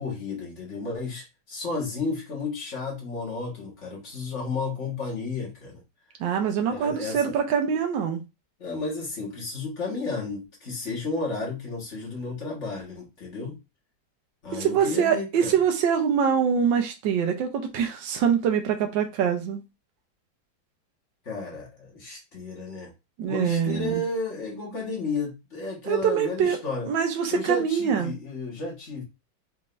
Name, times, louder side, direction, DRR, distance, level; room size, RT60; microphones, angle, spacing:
voice 1, 0.0-5.8 6.7-7.3 8.6-13.6 14.4-15.6 21.3-22.9 23.3-26.9 27.3-29.0, left 3 dB, 40° left, 1.7 m, -32 dB
voice 2, 6.2-8.2 14.6-19.6 23.2-24.0 25.8-26.6 26.9-28.1, right 7 dB, 70° right, 1.5 m, -24 dB
4.4 x 3.7 x 2.5 m
omnidirectional pair, 2.1 m